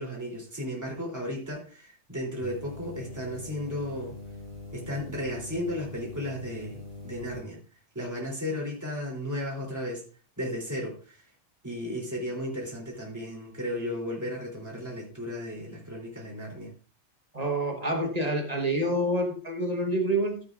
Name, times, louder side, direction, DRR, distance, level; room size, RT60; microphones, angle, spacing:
voice 1, 0.0-4.1 4.7-7.6 7.9-10.0 10.4-11.2 11.6-16.7, left 1 dB, 15° right, -3 dB, 3.1 m, -34 dB
sound 1, 2.4-7.4, left 3 dB, 75° left, 5.3 m, -43 dB
voice 2, 17.3-20.4, right 1 dB, 35° right, 3 dB, 1.3 m, -27 dB
14.0 x 7.9 x 2.4 m, 0.38 s
omnidirectional pair, 1.3 m